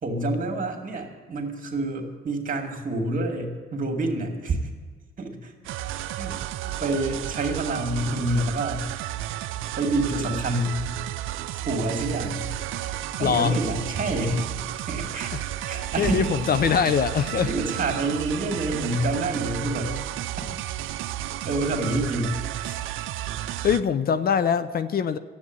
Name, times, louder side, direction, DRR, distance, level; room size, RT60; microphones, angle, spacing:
voice 1, 0.0-4.6 5.2-5.7 6.1-6.4 6.8-8.9 9.8-10.8 11.5-12.5 13.2-14.5 14.9-16.3 17.3-20.0 21.2-22.4 22.6-22.8, right 2 dB, 45° right, 3 dB, 2.4 m, -27 dB
sound 1, 5.6-23.8, right 13 dB, 85° right, 0.5 m, -32 dB
voice 2, 13.2-13.6 15.3-15.4 16.0-17.5 23.6-25.2, left 7 dB, 50° left, 13 dB, 0.6 m, -23 dB
13.0 x 8.1 x 9.6 m, 1.4 s
cardioid pair, 90°, 20 cm